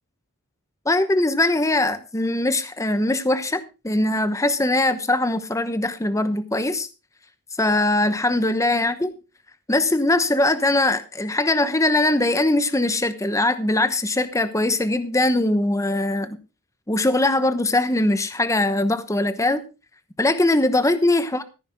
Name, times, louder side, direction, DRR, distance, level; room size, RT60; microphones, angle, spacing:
voice 1, 0.8-6.9 7.6-9.1 9.7-16.4 16.9-19.6 20.2-21.4, left 2 dB, 15° left, 11 dB, 0.9 m, -21 dB
14.0 x 10.5 x 3.5 m, 0.30 s
head